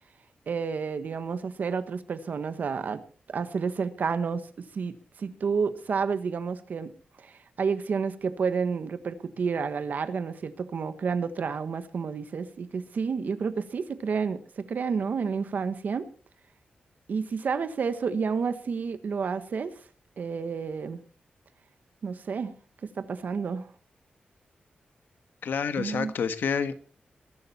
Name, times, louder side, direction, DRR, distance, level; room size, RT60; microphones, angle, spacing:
voice 1, 0.5-3.0 3.3-6.9 7.2-16.0 17.1-19.7 20.2-21.0 22.0-22.5 23.0-23.7 25.8-26.1, right 5 dB, 60° right, 11 dB, 1.3 m, -30 dB
voice 2, 25.4-26.7, left 6 dB, 90° left, 10 dB, 1.5 m, -28 dB
21.0 x 11.5 x 4.3 m, 0.40 s
wide cardioid pair, 155°, 3 cm